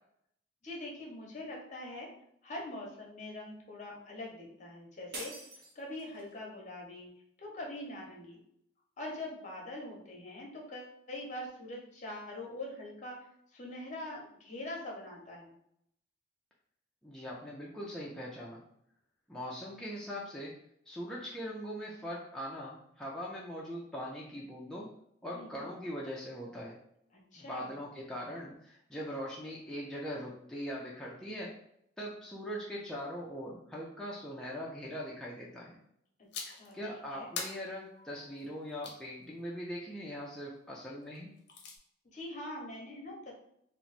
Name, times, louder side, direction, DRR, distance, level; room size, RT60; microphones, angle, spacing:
voice 1, 0.6-2.1 2.4-5.3 5.7-7.1 7.4-8.4 9.0-13.2 13.5-15.6 25.3-25.7 27.1-27.8 36.4-36.8 37.1-37.3 42.1-43.3, left 1 dB, 40° left, -1 dB, 0.9 m, -43 dB
sound 1, 5.1-6.4, right 2 dB, 60° right, 0.9 m, -45 dB
voice 2, 17.0-18.6 19.3-20.5 20.9-24.9 25.2-26.8 27.4-31.5 32.0-35.8 36.7-41.3, equal, 5° left, -5 dB, 0.4 m, -41 dB
sound 2, 36.3-36.7 37.4-39.0 41.1-41.8, left 5 dB, 65° left, 0.6 m, -43 dB
2.9 x 2.1 x 4.1 m, 0.73 s
head